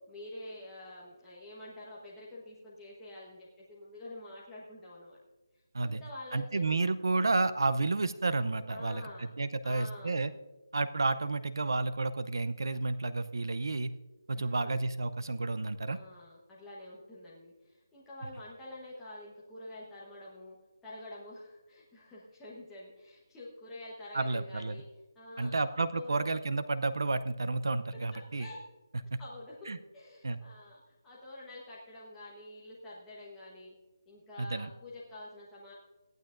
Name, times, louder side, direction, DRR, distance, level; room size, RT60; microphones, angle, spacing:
voice 1, 0.1-5.2 5.5-6.9 8.7-9.3 9.6-10.3 14.3-14.9 15.9-20.6 20.8-24.9 25.1-26.3 28.1-28.6 29.0-33.7 34.1-35.7, left 1 dB, 5° left, -8 dB, 1.2 m, -48 dB
voice 2, 6.3-9.0 9.4-10.3 10.7-13.9 14.3-16.0 24.1-24.8 25.4-28.5 29.7-29.8 30.2-30.4 34.4-34.7, right 3 dB, 70° right, 12 dB, 0.6 m, -31 dB
17.0 x 12.0 x 2.6 m, 1.1 s
figure-of-eight pair, 175°, 2 cm